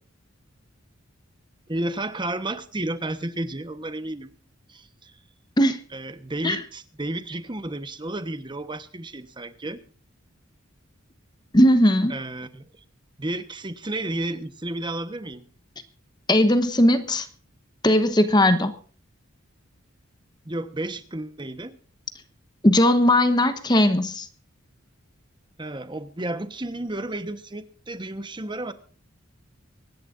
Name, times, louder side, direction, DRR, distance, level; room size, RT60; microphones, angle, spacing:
voice 1, 1.7-4.3 4.7-5.1 5.9-9.8 12.1-12.6 13.2-15.5 20.4-21.8 25.6-28.7, right 1 dB, 20° right, 1.1 m, -32 dB
voice 2, 11.5-12.2 16.3-17.3 17.8-18.7 22.6-24.3, left 1 dB, 20° left, 1.1 m, -18 dB
25.0 x 11.0 x 2.6 m
head